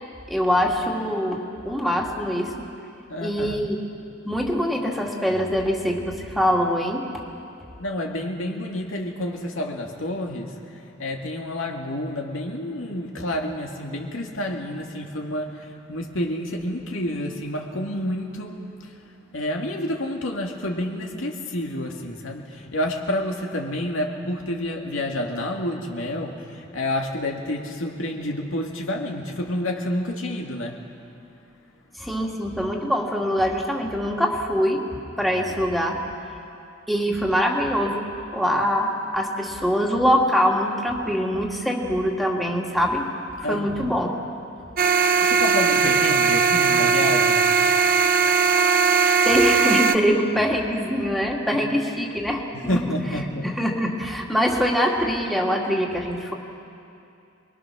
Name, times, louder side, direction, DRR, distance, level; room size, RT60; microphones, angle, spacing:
voice 1, 0.3-2.5 3.2-3.8 4.2-7.1 32.0-34.8 35.2-36.0 36.9-43.0 43.5-44.1 49.3-52.8 53.4-56.3, equal, ahead, -1 dB, 2.1 m, -23 dB
voice 2, 3.1-3.6 7.8-18.9 19.3-30.8 43.4-43.9 45.2-47.5 51.5-51.6 52.7-53.5, left 1 dB, 85° left, 1 dB, 2.4 m, -29 dB
sound 1, 44.8-50.0, right 5 dB, 50° right, 0.8 m, -19 dB
27.5 x 22.0 x 6.3 m, 2.7 s
head